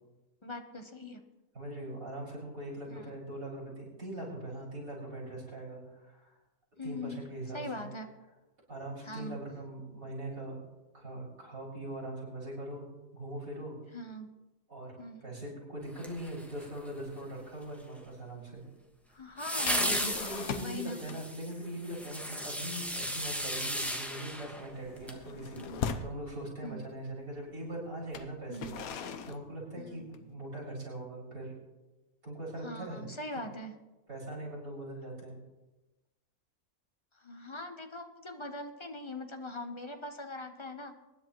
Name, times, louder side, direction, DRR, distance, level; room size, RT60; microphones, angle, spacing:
voice 1, 0.4-1.2 2.9-3.2 6.8-7.2 7.5-8.1 9.0-9.4 13.9-14.3 15.0-15.2 19.1-20.1 20.6-21.0 25.5-25.8 26.6-26.8 28.5-28.8 29.8-30.1 32.6-33.7 37.1-40.9, left 2 dB, 25° left, 6 dB, 0.8 m, -41 dB
voice 2, 1.5-6.3 6.8-7.8 8.7-10.6 10.9-12.9 13.1-13.7 14.7-14.9 15.2-18.6 19.7-25.6 26.0-28.7 29.2-31.5 32.2-33.0 34.1-35.4, right 1 dB, 80° right, -6 dB, 6.1 m, -41 dB
sound 1, 16.0-16.9 19.4-25.2 25.6-25.7, equal, ahead, 1.2 m, -35 dB
sound 2, 19.7-20.8 21.1-21.4 21.7-21.9 22.3-22.6 22.9-23.2 23.5-26.2 27.0-27.1 28.0-30.3, left 6 dB, 80° left, 1.2 m, -40 dB
24.0 x 10.5 x 3.1 m, 1.1 s
omnidirectional pair, 1.5 m